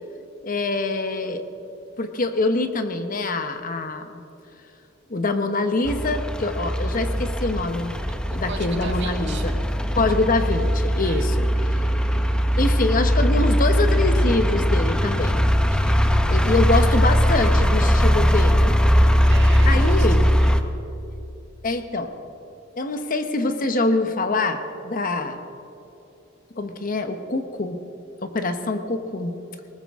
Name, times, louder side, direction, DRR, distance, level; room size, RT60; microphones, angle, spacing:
voice 1, 0.4-1.4 2.0-4.2 5.1-8.0 8.3-9.7 9.9-11.8 12.6-15.4 16.3-18.8 19.7-20.2 21.6-22.1 22.8-25.4 26.5-27.8 28.2-29.3, left 2 dB, 45° left, 8 dB, 1.0 m, -25 dB
sound 1, 5.9-20.6, equal, 5° left, 0.6 m, -20 dB
voice 2, 8.4-9.5 11.0-11.3 15.7-16.0 19.3-20.6, right 4 dB, 60° right, 3 dB, 1.8 m, -37 dB
20.5 x 19.0 x 3.6 m, 2.8 s
head